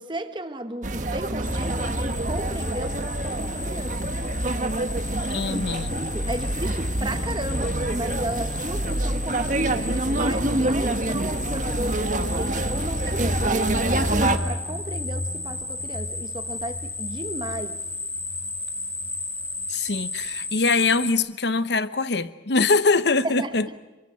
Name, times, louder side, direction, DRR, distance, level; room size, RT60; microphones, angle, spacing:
voice 1, 0.0-4.1 5.5-5.6 5.9-17.8 23.2-23.8, right 1 dB, 25° right, 1.3 m, -34 dB
sound 1, 0.8-14.4, right 1 dB, 45° right, 1.3 m, -26 dB
sound 2, 1.4-21.1, left 2 dB, 10° left, 1.7 m, -33 dB
voice 2, 5.3-5.9 19.7-23.7, left 3 dB, 65° left, 0.9 m, -23 dB
27.0 x 23.5 x 6.4 m
head